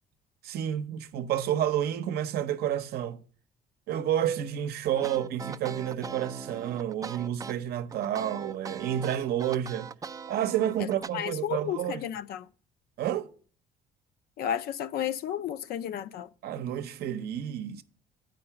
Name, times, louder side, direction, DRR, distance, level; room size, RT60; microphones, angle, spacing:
voice 1, 0.4-3.2 3.9-9.9 10.3-12.1 13.0-13.3 16.4-17.8, right 10 dB, 70° right, 0.7 m, -30 dB
sound 1, 4.9-11.1, right 5 dB, 20° right, 0.3 m, -40 dB
voice 2, 11.1-12.5 14.4-16.3, left 10 dB, 65° left, 0.5 m, -32 dB
7.7 x 5.2 x 5.8 m
cardioid pair, 110°, 17 cm